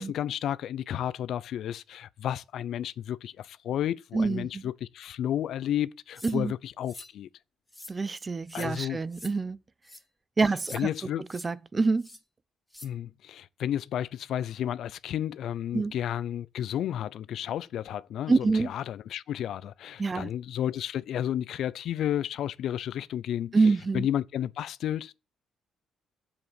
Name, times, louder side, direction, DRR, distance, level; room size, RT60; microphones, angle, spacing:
voice 1, 0.0-7.3 8.5-9.0 10.7-11.2 12.8-23.6 23.9-25.2, left 11 dB, 75° left, 0.5 m, -32 dB
voice 2, 4.1-4.6 6.2-6.5 7.9-9.6 10.4-10.9 11.4-12.1 15.7-15.9 18.3-18.7 20.0-20.3 23.5-24.1, right 4 dB, 30° right, 0.6 m, -26 dB
sound 1, 6.2-6.4 6.9-7.1 7.7-8.0 8.5-8.7 9.1-9.3 9.8-10.0 10.6-10.8 11.3-11.5 12.0-12.2 12.7-12.9, left 1 dB, 10° left, 2.3 m, -46 dB
7.6 x 7.2 x 8.1 m
cardioid pair, 90°, 0 cm